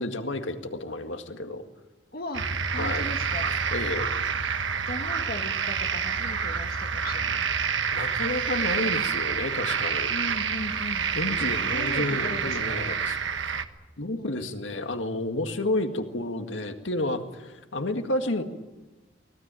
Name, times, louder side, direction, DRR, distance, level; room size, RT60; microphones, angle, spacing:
voice 1, 0.0-1.6 2.7-3.1 3.5-4.2 7.9-10.1 11.2-13.2 14.0-18.4, left 2 dB, 90° left, 6 dB, 2.0 m, -31 dB
voice 2, 2.1-3.5 4.9-7.7 10.1-11.1 11.7-12.9 14.2-14.8, left 1 dB, 50° left, 5 dB, 1.7 m, -38 dB
sound 1, 2.3-13.6, right 6 dB, 80° right, 1.4 m, -28 dB
24.0 x 19.0 x 9.0 m, 1.1 s
head